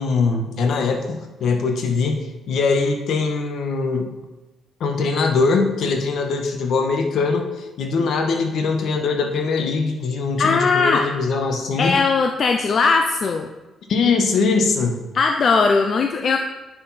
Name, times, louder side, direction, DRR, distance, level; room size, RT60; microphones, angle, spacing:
voice 1, 0.0-4.1 4.8-7.5 7.8-12.0 13.9-15.0, left 4 dB, 70° left, 5 dB, 1.3 m, -21 dB
voice 2, 10.4-11.0 11.8-13.5 15.1-16.4, left 4 dB, 50° left, 4 dB, 0.7 m, -19 dB
9.8 x 6.0 x 4.3 m, 1.1 s
cardioid pair, 90°, 0 cm